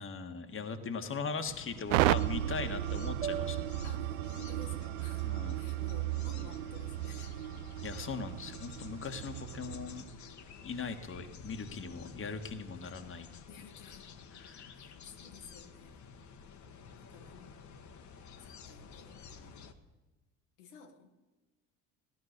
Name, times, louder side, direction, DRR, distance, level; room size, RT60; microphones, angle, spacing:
voice 1, 0.0-3.7 5.2-5.6 7.8-10.1 10.6-13.3 14.3-14.8, left 5 dB, 35° left, 6 dB, 1.6 m, -40 dB
sound 1, 1.5-19.7, left 6 dB, 50° left, 1.4 m, -51 dB
sound 2, 1.9-10.0, right 14 dB, 85° right, 0.5 m, -34 dB
sound 3, 3.2-7.5, right 8 dB, 20° right, 0.6 m, -46 dB
voice 2, 3.8-7.4 8.6-8.8 13.5-14.1 14.7-16.1 17.0-17.6 18.4-19.7 20.6-21.1, left 5 dB, 85° left, 3 dB, 1.7 m, -54 dB
16.5 x 11.0 x 6.7 m, 1.1 s
hypercardioid pair, 70°, 37 cm